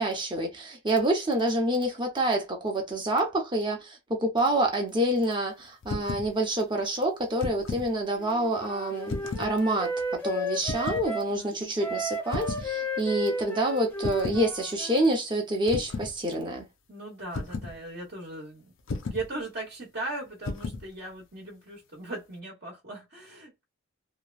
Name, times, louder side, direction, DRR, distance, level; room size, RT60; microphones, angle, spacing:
voice 1, 0.0-16.7, right 1 dB, 25° right, 0.8 m, -27 dB
sound 1, 5.8-6.3 7.2-7.9 9.1-9.5 10.6-11.1 12.3-12.7 14.0-14.5 15.7-16.1 17.3-17.8 18.9-19.3 20.4-20.9, left 3 dB, 65° left, 0.5 m, -34 dB
Wind instrument woodwind instrument, 8.1-11.3 11.8-15.1, equal, 10° left, 0.7 m, -33 dB
voice 2, 11.3-11.7 16.9-18.7 19.1-23.6, right 2 dB, 50° right, 1.0 m, -38 dB
2.9 x 2.2 x 2.4 m
head